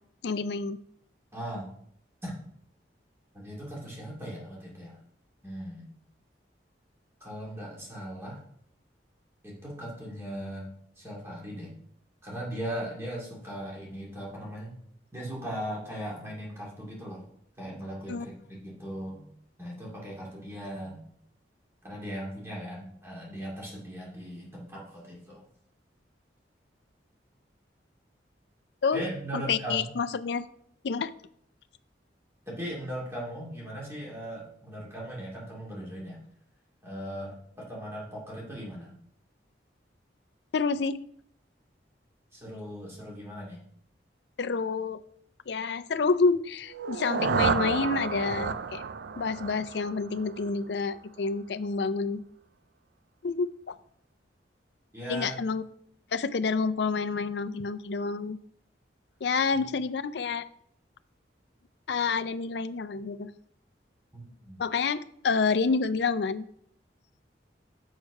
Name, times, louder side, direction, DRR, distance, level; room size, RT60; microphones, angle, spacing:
voice 1, 0.2-0.8 18.1-18.3 28.8-29.0 29.3-30.5 30.8-31.1 40.5-41.0 44.4-45.0 45.5-48.8 49.2-52.2 53.2-53.7 55.1-55.6 56.1-58.4 59.2-60.5 61.9-63.3 64.6-66.5, left 4 dB, 65° left, 13 dB, 0.4 m, -28 dB
voice 2, 1.3-1.7 2.2-2.3 3.3-5.0 5.4-5.9 7.2-8.4 9.4-10.7 11.0-11.7 12.2-14.8 15.1-17.3 17.6-19.3 19.6-21.0 21.8-25.4 28.9-29.9 32.5-36.2 36.8-38.9 42.3-43.6 54.9-55.3 59.5-59.6 64.1-64.6, equal, 15° right, -4 dB, 2.2 m, -38 dB
sound 1, 46.7-50.6, right 5 dB, 70° right, 0.4 m, -31 dB
6.4 x 6.4 x 4.7 m, 0.68 s
head